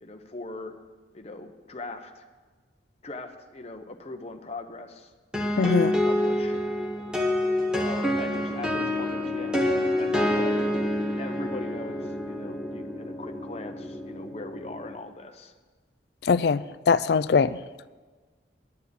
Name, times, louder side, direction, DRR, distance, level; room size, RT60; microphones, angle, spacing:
voice 1, 0.0-0.7 1.1-2.3 3.0-5.1 5.6-6.6 7.8-9.7 10.0-10.7 11.2-15.5, left 2 dB, 35° left, 5 dB, 0.9 m, -40 dB
sound 1, 5.3-14.9, left 1 dB, 5° right, 1.4 m, -27 dB
voice 2, 5.6-5.9 16.2-17.6, left 5 dB, 60° left, 16 dB, 0.4 m, -22 dB
10.5 x 7.0 x 8.3 m, 1.4 s
head